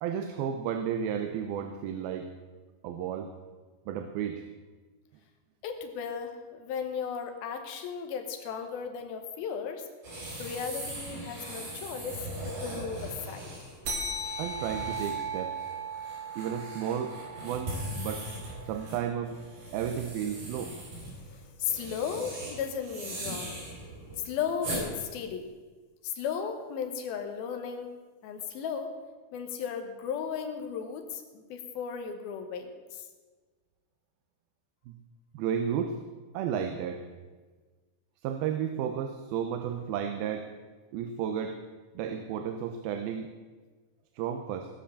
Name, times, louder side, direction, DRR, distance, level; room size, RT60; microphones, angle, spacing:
voice 1, 0.0-2.3 2.8-3.3 3.9-4.4 14.4-15.6 16.4-18.3 18.7-19.4 19.7-20.7 34.9-35.0 35.3-36.0 36.3-37.0 38.2-40.5 40.9-41.6 42.0-43.3 44.2-44.7, right 8 dB, 85° right, 7 dB, 2.7 m, -33 dB
voice 2, 5.6-9.9 10.4-13.5 21.6-23.6 24.3-25.5 26.0-27.9 28.2-28.9 29.3-33.0, left 7 dB, 80° left, 6 dB, 3.0 m, -35 dB
sound 1, 10.0-24.8, right 1 dB, 60° right, 5.6 m, -40 dB
sound 2, 13.8-18.8, right 3 dB, 40° right, 3.1 m, -37 dB
17.5 x 7.7 x 7.0 m, 1.4 s
omnidirectional pair, 4.3 m